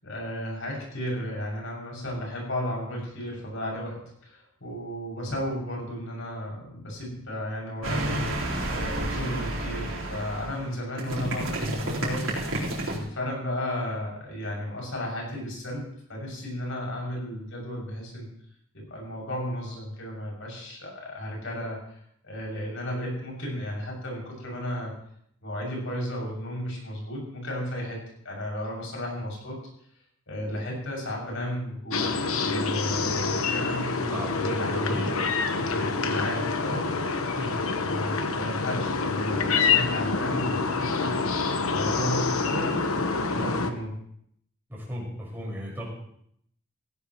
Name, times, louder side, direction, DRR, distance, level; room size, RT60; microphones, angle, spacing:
voice 1, 0.0-12.5 12.9-18.3 18.7-22.0 22.2-24.9 25.4-28.0 28.2-29.6 30.3-34.1 34.3-35.1 35.7-36.9 37.8-43.0 43.3-44.0, equal, 65° left, -1 dB, 6.9 m, -34 dB
sound 1, 7.8-13.0, right 1 dB, 65° right, 4.2 m, -30 dB
sound 2, 31.9-43.7, left 4 dB, 85° left, 1.2 m, -27 dB
voice 2, 34.0-35.1 37.3-37.6 44.7-45.9, equal, 10° right, -4 dB, 5.4 m, -35 dB
17.0 x 16.5 x 3.1 m, 0.68 s
head